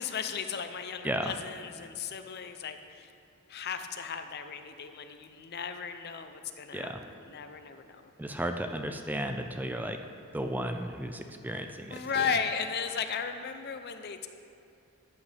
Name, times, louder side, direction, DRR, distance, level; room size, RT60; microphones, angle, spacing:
voice 1, 0.0-3.1 3.5-6.9 7.3-8.1 11.9-14.3, left 6 dB, 50° left, 8 dB, 0.6 m, -35 dB
voice 2, 1.0-1.3 6.7-7.0 8.2-10.0 10.3-12.2, right 1 dB, 10° right, 5 dB, 0.4 m, -34 dB
13.5 x 8.5 x 3.4 m, 2.7 s
head